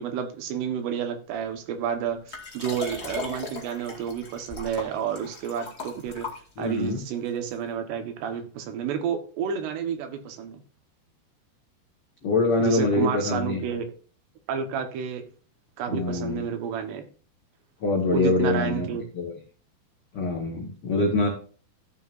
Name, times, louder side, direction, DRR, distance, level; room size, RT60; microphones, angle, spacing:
voice 1, 0.0-6.3 6.6-10.6 12.6-13.9 14.5-15.2 15.8-17.0 18.1-19.1, right 7 dB, 80° right, 7 dB, 3.2 m, -30 dB
Liquid, 2.3-6.9 7.5-7.6, left 3 dB, 30° left, 1.2 m, -37 dB
voice 2, 6.6-7.0 12.2-13.6 15.9-16.4 17.8-18.9 19.1-19.3 20.1-21.3, left 3 dB, 70° left, 0 dB, 1.3 m, -24 dB
14.0 x 7.6 x 2.5 m, 0.40 s
omnidirectional pair, 4.9 m